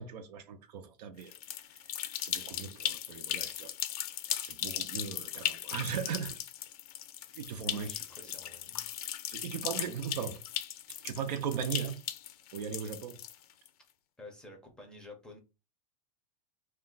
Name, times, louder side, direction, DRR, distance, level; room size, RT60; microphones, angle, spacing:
voice 1, 0.0-1.3 1.7-1.8 2.2-3.7 4.4-6.4 7.3-7.9 9.3-10.4 10.9-12.0 12.5-13.2, right 7 dB, 80° right, 0.6 m, -38 dB
sound 1, 1.2-13.7, left 12 dB, 65° left, 0.5 m, -38 dB
voice 2, 7.5-8.9 14.2-15.4, left 2 dB, 5° left, 0.5 m, -51 dB
2.4 x 2.3 x 3.8 m
supercardioid pair, 160°, 20 cm